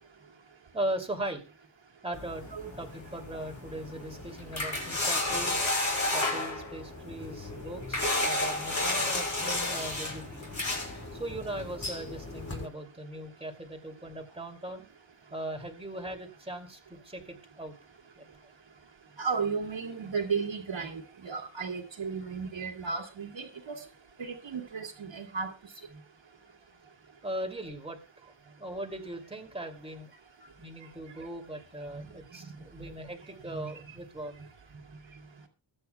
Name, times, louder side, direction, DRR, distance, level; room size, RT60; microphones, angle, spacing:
voice 1, 0.7-1.4 2.0-5.6 6.1-10.6 11.1-14.9 15.3-17.8 18.2-18.3 27.2-28.3 28.6-30.1 30.6-34.3, right 1 dB, 10° right, 3 dB, 2.7 m, -39 dB
sound 1, 2.1-12.6, left 2 dB, 35° left, 6.0 m, -32 dB
voice 2, 19.2-23.8 24.2-25.5 33.5-33.7, right 5 dB, 65° right, -3 dB, 2.4 m, -34 dB
23.5 x 8.9 x 2.3 m, 0.30 s
wide cardioid pair, 130°, 50 cm